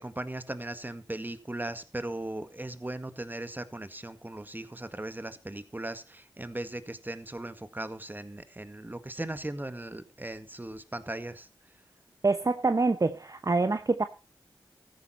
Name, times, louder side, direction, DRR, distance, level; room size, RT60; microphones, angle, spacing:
voice 1, 0.0-11.5, right 1 dB, 20° right, 1.8 m, -38 dB
voice 2, 12.2-14.0, right 3 dB, 40° right, 1.0 m, -26 dB
14.5 x 10.5 x 4.3 m
cardioid pair, 40°, 9 cm